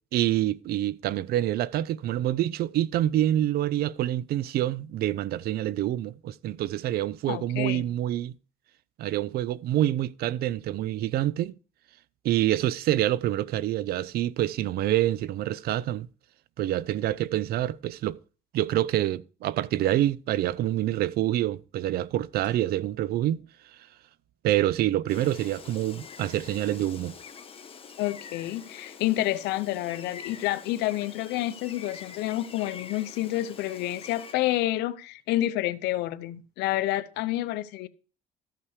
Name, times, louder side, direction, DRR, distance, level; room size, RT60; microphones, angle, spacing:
voice 1, 0.1-8.3 9.0-11.5 12.2-16.1 16.6-18.2 18.5-23.4 24.4-27.2, right 13 dB, 65° right, 0.5 m, -26 dB
voice 2, 7.3-7.9 28.0-37.9, left 15 dB, 90° left, 0.7 m, -29 dB
Bell, 22.4-23.8, left 2 dB, 25° right, 4.3 m, -56 dB
Gull seagull, 25.1-34.3, left 6 dB, 35° left, 1.2 m, -45 dB
13.5 x 5.6 x 4.8 m
cardioid pair, 110°, 17 cm